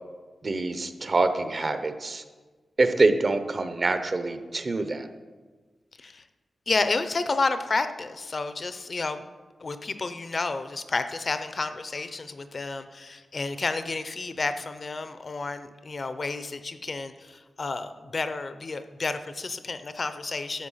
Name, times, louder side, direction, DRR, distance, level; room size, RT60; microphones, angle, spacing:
voice 1, 0.4-2.2 2.8-5.1, right 3 dB, 35° right, 9 dB, 0.7 m, -25 dB
voice 2, 6.7-9.2 9.6-20.7, left 3 dB, 35° left, 10 dB, 0.6 m, -30 dB
13.0 x 7.7 x 5.6 m, 1.4 s
wide cardioid pair, 160°, 0 cm